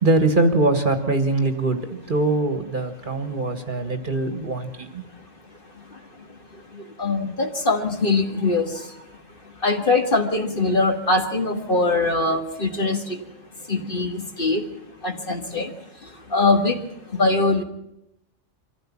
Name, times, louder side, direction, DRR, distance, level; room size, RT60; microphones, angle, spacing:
voice 1, 0.0-5.0, right 2 dB, 40° right, 8 dB, 1.6 m, -22 dB
voice 2, 7.0-8.7 9.6-13.2 13.7-14.6 15.0-15.7 16.3-16.8 17.1-17.6, left 3 dB, 45° left, 5 dB, 2.0 m, -22 dB
23.5 x 15.0 x 7.3 m, 0.83 s
omnidirectional pair, 1.3 m